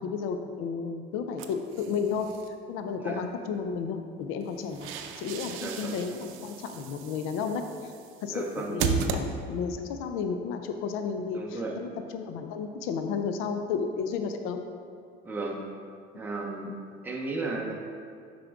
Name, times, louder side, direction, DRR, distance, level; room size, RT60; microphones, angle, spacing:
voice 1, 0.0-2.3 2.7-4.9 5.2-7.9 8.2-14.6, left 6 dB, 75° left, 6 dB, 0.5 m, -32 dB
sound 1, 1.4-2.5 4.4-9.8, right 7 dB, 70° right, 0.5 m, -35 dB
voice 2, 5.6-6.0 8.3-8.8 11.3-11.8 15.2-15.6 16.2-16.7 17.0-17.7, right 3 dB, 10° right, -1 dB, 0.6 m, -34 dB
7.2 x 5.1 x 3.5 m, 2.2 s
cardioid pair, 165°, 21 cm